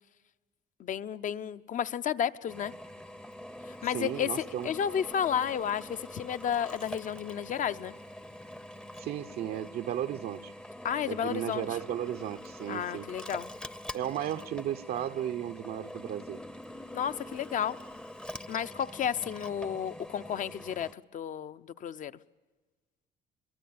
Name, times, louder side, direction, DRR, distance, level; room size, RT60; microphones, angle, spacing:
voice 1, 0.8-2.7 3.6-7.9 10.8-11.8 12.7-13.5 16.9-17.8 18.5-22.2, left 9 dB, 50° left, 0.8 m, -32 dB
Drill, 2.5-20.9, left 1 dB, 5° left, 0.7 m, -45 dB
voice 2, 3.9-4.7 9.0-10.5 11.1-13.1 13.9-16.4, right 11 dB, 70° right, 0.8 m, -34 dB
23.0 x 22.5 x 8.7 m
cardioid pair, 110°, 17 cm